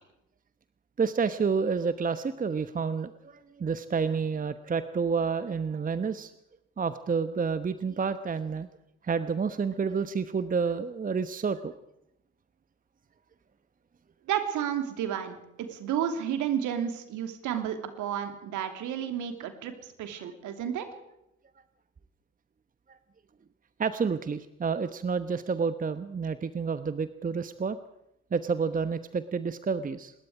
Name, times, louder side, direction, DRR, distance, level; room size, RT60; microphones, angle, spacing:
voice 1, 1.0-6.3 6.8-8.7 9.0-11.7 20.2-20.3 22.9-23.0 23.8-27.8 28.3-30.1, right 5 dB, 25° right, 12 dB, 1.1 m, -29 dB
voice 2, 14.3-19.7 20.0-20.9, right 9 dB, 60° right, 6 dB, 3.1 m, -31 dB
25.0 x 21.0 x 4.9 m, 0.84 s
figure-of-eight pair, 50°, 34 cm